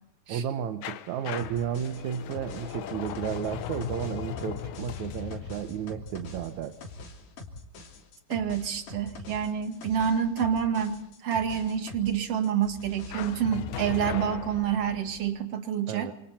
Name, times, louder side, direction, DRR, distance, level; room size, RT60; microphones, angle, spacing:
voice 1, 0.3-6.8 15.9-16.1, right 8 dB, 70° right, 8 dB, 2.4 m, -33 dB
sound 1, 0.8-7.6 13.1-15.3, left 9 dB, 70° left, 2.3 m, -38 dB
sound 2, 1.4-12.2 12.4-13.4, left 2 dB, 90° left, 4.7 m, -44 dB
voice 2, 8.3-16.1, right 8 dB, 50° right, 6 dB, 3.0 m, -28 dB
27.5 x 27.5 x 4.4 m, 0.77 s
omnidirectional pair, 3.7 m